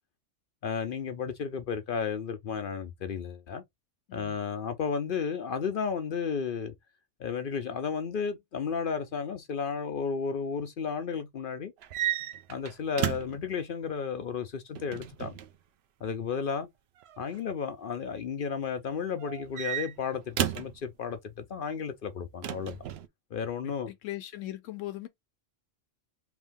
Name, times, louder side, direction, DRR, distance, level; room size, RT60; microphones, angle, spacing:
voice 1, 0.6-3.6 4.1-6.7 7.2-11.7 12.5-15.4 16.0-16.7 17.2-22.8 23.3-23.9, left 6 dB, 55° left, 0.6 m, -33 dB
voice 2, 4.1-4.4 23.6-25.1, left 15 dB, 80° left, 1.0 m, -39 dB
sound 1, 11.8-13.5 14.7-15.5 17.0-17.4 19.2-20.8 22.4-23.1, right 12 dB, 65° right, 0.7 m, -33 dB
3.5 x 2.6 x 3.5 m
omnidirectional pair, 1.3 m